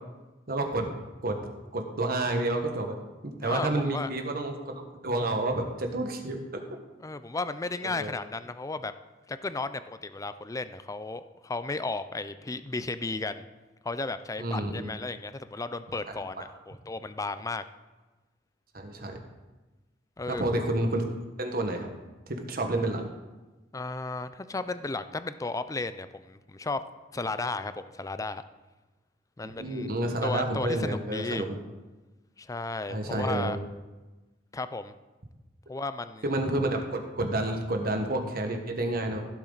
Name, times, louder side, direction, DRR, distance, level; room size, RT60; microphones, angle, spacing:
voice 1, 0.5-0.9 1.2-1.4 1.7-3.0 3.2-6.6 7.8-8.1 14.4-15.0 16.1-16.4 18.7-19.2 20.3-21.0 21.4-21.9 22.3-23.0 29.4-31.6 32.9-33.5 36.2-39.2, right 1 dB, 55° right, 4 dB, 1.4 m, -30 dB
voice 2, 3.4-4.1 7.0-8.9 9.3-13.5 13.8-17.6 20.2-20.4 23.7-26.8 27.1-28.4 29.4-29.9 30.2-31.5 32.4-33.6 34.5-34.9 35.7-36.2, left 3 dB, 20° left, 12 dB, 0.4 m, -34 dB
16.0 x 7.5 x 4.0 m, 1.2 s
head